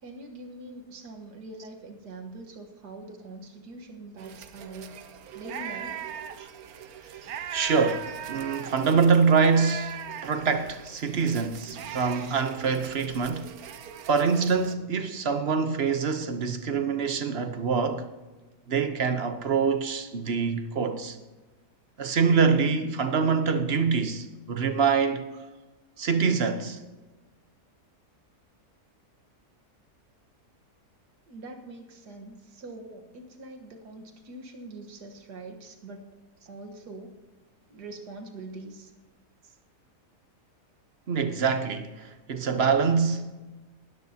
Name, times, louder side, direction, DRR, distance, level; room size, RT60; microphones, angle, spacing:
voice 1, 0.0-4.9 5.3-6.1 31.3-36.2 36.5-37.2 37.7-38.9, right 2 dB, 85° right, 1.9 m, -43 dB
flock of sheep, 4.2-14.7, right 9 dB, 70° right, 1.2 m, -40 dB
voice 2, 7.5-13.5 14.1-18.1 18.7-21.2 22.0-25.3 26.0-26.8 41.1-43.3, right 5 dB, 45° right, 1.0 m, -25 dB
19.0 x 13.0 x 2.9 m
omnidirectional pair, 1.7 m